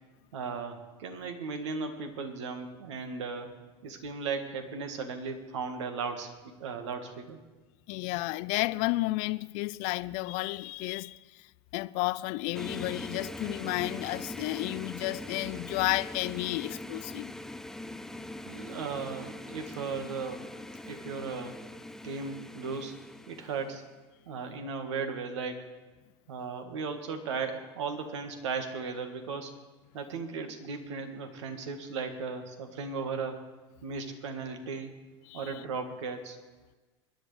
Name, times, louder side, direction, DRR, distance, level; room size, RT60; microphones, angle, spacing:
voice 1, 0.3-3.5 3.8-6.3 6.6-7.4 18.5-20.5 20.9-21.5 22.0-22.9 23.3-23.8 24.3-25.7 26.3-29.5 29.9-33.4 33.8-34.9 35.3-36.4, right 5 dB, 80° right, 1.7 m, -36 dB
voice 2, 7.9-11.2 11.7-17.3 35.3-35.5, left 21 dB, 60° left, 0.4 m, -32 dB
sound 1, 12.5-23.9, left 1 dB, 5° left, 0.5 m, -42 dB
22.5 x 11.0 x 3.4 m
hypercardioid pair, 90°, 15 cm